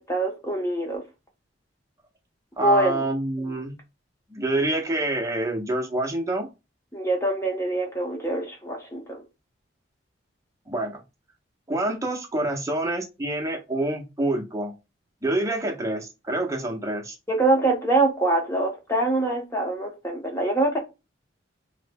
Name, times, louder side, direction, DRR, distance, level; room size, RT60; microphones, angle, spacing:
voice 1, 0.1-1.0 2.6-3.0 6.9-9.2 17.3-20.8, right 2 dB, 15° left, 0.9 m, -24 dB
voice 2, 2.6-3.8 4.3-6.5 10.7-11.0 11.7-14.7 15.2-17.2, right 1 dB, 15° right, 0.7 m, -27 dB
3.2 x 2.1 x 3.3 m
head